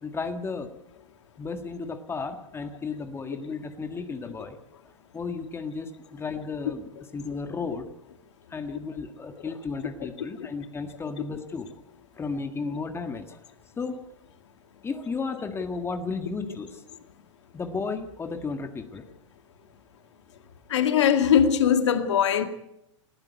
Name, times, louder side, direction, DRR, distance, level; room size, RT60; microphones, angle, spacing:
voice 1, 0.0-0.7 1.4-4.6 5.1-7.9 8.5-11.7 12.2-13.4 13.8-14.0 14.8-16.8 17.5-19.1, left 4 dB, 15° left, 1.7 m, -33 dB
voice 2, 20.7-22.4, left 8 dB, 65° left, 2.2 m, -21 dB
20.0 x 15.5 x 9.3 m
figure-of-eight pair, 105°, 16 cm